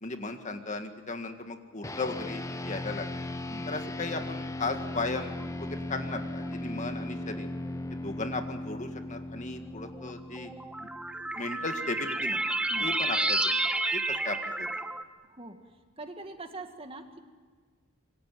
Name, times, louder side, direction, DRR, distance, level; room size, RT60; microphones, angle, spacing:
voice 1, 0.0-3.3 3.7-5.3 5.6-7.5 7.9-10.5 10.8-10.9 11.4-12.4 12.8-13.6 13.9-14.7, left 3 dB, 35° left, 6 dB, 1.9 m, -36 dB
sound 1, 1.8-11.5, left 1 dB, 15° left, 1.0 m, -37 dB
sound 2, 4.9-5.6 6.4-6.5 7.7-7.8 9.9-15.0, right 2 dB, 5° right, 1.2 m, -31 dB
voice 2, 15.3-15.6 16.0-17.2, right 2 dB, 30° right, 6 dB, 2.0 m, -42 dB
27.0 x 23.5 x 7.6 m, 1.5 s
head